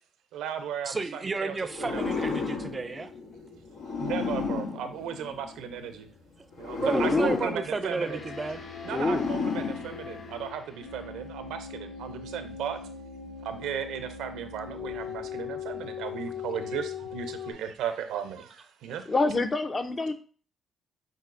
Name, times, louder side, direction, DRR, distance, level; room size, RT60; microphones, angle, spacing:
voice 1, 0.3-2.1 4.0-6.1 6.6-8.2 8.8-12.8 13.4-19.1, right 8 dB, 90° right, 9 dB, 0.5 m, -36 dB
voice 2, 0.9-3.1 6.8-8.6, right 3 dB, 30° right, 11 dB, 0.5 m, -32 dB
sound 1, 1.7-5.8 6.5-10.5, left 4 dB, 85° left, 1.3 m, -33 dB
voice 3, 6.9-7.4 8.9-9.2 19.1-20.1, left 2 dB, 30° left, 8 dB, 0.6 m, -26 dB
Gong, 7.6-12.2, left 2 dB, 50° left, 2.3 m, -51 dB
sound 2, 8.1-17.5, left 7 dB, 65° left, 1.1 m, -40 dB
7.6 x 2.7 x 2.6 m, 0.40 s
cardioid pair, 90°, 0 cm